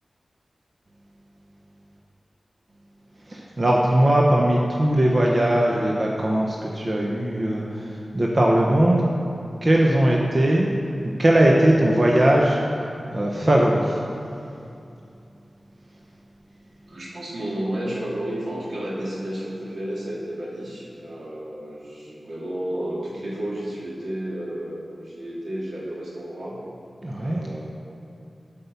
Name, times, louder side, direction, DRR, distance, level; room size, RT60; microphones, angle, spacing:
voice 1, 3.3-9.1 9.6-10.7 11.0-12.6 13.1-14.0 27.0-27.4, right 1 dB, 40° right, -2 dB, 0.9 m, -19 dB
voice 2, 16.9-26.6 27.2-27.7, right 1 dB, 75° right, -5 dB, 2.7 m, -32 dB
12.5 x 5.4 x 6.9 m, 2.6 s
wide cardioid pair, 95°, 0 cm